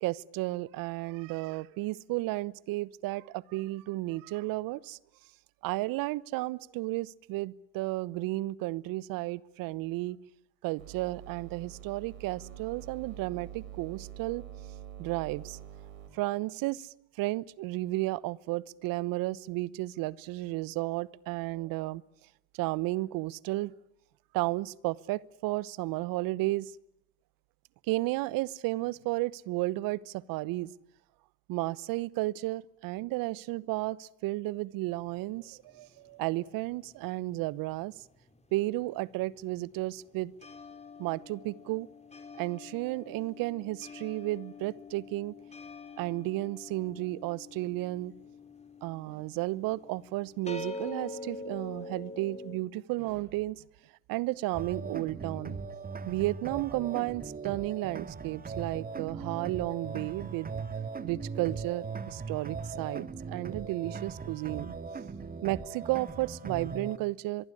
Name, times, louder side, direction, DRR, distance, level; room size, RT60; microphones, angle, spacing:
voice 1, 0.0-5.0 5.6-10.2 10.6-14.4 15.0-15.6 16.1-22.0 22.5-23.7 24.3-26.7 27.9-30.7 31.5-37.9 38.5-40.3 41.0-41.9 42.4-45.4 46.0-48.1 48.8-53.6 54.1-55.6 56.1-60.5 61.0-64.7 65.4-67.5, right 19 dB, 55° right, 1.0 m, -33 dB
sound 1, 10.8-16.1, right 11 dB, 80° right, 4.0 m, -46 dB
sound 2, 34.9-37.5 37.8-52.6, left 3 dB, 15° left, 4.3 m, -46 dB
sound 3, 54.5-67.0, right 5 dB, 20° right, 2.2 m, -39 dB
24.0 x 23.5 x 10.0 m
hypercardioid pair, 80°, 40 cm